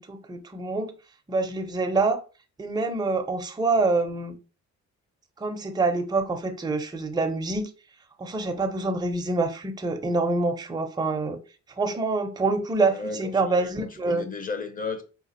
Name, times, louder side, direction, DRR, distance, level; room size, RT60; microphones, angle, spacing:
voice 1, 0.1-0.9 1.3-2.2 2.6-4.4 5.4-7.7 8.2-11.4 11.8-14.2, right 3 dB, 15° right, 0.5 m, -26 dB
voice 2, 12.8-15.0, left 4 dB, 30° left, 0.7 m, -34 dB
4.1 x 2.3 x 2.6 m
cardioid pair, 90°, 30 cm